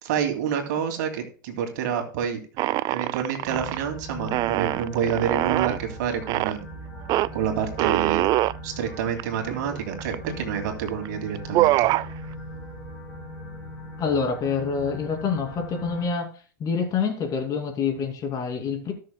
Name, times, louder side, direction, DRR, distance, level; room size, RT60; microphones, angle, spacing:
voice 1, 0.0-2.4 2.9-6.6 7.3-8.3 8.6-11.9, right 8 dB, 65° right, 4 dB, 2.4 m, -28 dB
sound 1, 2.6-3.8 4.3-5.8 6.3-6.6 7.1-7.3 7.8-8.6 9.2-9.3 9.5-10.3 10.9-11.1 11.3-12.1, right 16 dB, 40° right, 0.4 m, -23 dB
sound 2, 3.5-16.1, equal, 20° left, 4.6 m, -39 dB
voice 2, 14.0-16.3 16.6-18.9, left 5 dB, 35° left, 4 dB, 2.6 m, -26 dB
18.5 x 6.5 x 2.2 m, 0.40 s
hypercardioid pair, 100°, 10 cm